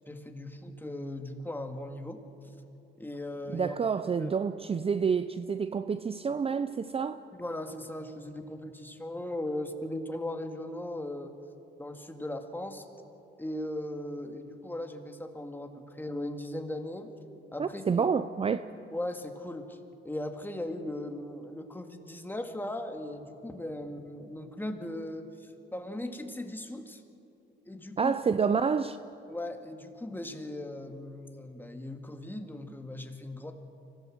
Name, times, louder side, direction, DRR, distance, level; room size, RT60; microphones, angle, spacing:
voice 1, 0.1-2.2 3.0-3.7 4.2-4.3 7.3-11.3 11.8-12.8 13.4-17.1 17.5-18.1 18.9-19.8 20.0-27.0 27.7-28.2 29.3-33.5, left 1 dB, 10° left, 2.1 m, -38 dB
voice 2, 3.5-7.2 17.6-18.7 28.0-29.0, right 6 dB, 30° right, 0.5 m, -28 dB
25.0 x 17.0 x 7.9 m
cardioid pair, 90°, 20 cm